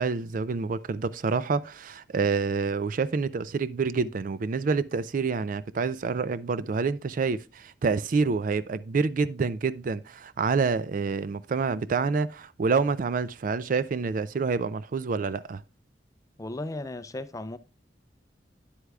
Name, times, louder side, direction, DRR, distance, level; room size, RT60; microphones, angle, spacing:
voice 1, 0.0-15.6, right 4 dB, 50° right, 0.4 m, -27 dB
voice 2, 16.4-17.6, left 2 dB, 20° left, 0.5 m, -35 dB
9.6 x 8.0 x 2.3 m
head